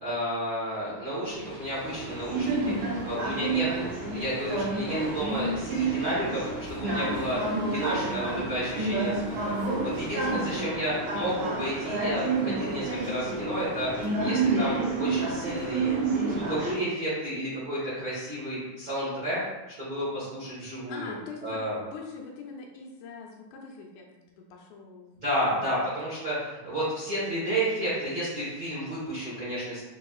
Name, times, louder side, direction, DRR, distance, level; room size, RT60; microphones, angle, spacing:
voice 1, 0.0-7.4 7.7-16.0 16.2-19.4 19.8-21.1 21.4-21.8 25.2-29.8, equal, 50° right, -11 dB, 1.1 m, -32 dB
sound 1, 1.3-10.5, right 1 dB, 55° left, 1.2 m, -44 dB
sound 2, 1.9-16.7, right 3 dB, 70° right, 1.8 m, -29 dB
voice 2, 6.9-8.1 20.9-21.6 21.9-25.9, left 4 dB, 80° left, 0 dB, 2.0 m, -41 dB
5.7 x 2.8 x 2.3 m, 1.1 s
omnidirectional pair, 3.5 m